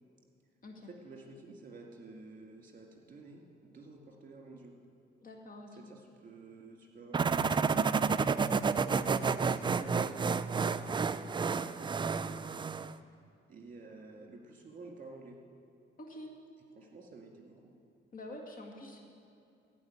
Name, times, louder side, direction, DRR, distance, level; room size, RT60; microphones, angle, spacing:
voice 1, 0.9-4.8 5.7-7.9 8.4-10.1 13.5-15.4 16.8-17.7, right 3 dB, 40° right, 1 dB, 2.3 m, -51 dB
voice 2, 5.2-5.8 16.0-16.3 18.1-19.0, left 1 dB, 45° left, 1 dB, 2.0 m, -47 dB
sound 1, 7.1-12.9, right 5 dB, 25° right, 0.4 m, -30 dB
15.0 x 5.0 x 9.5 m, 2.6 s
cardioid pair, 90°, 20 cm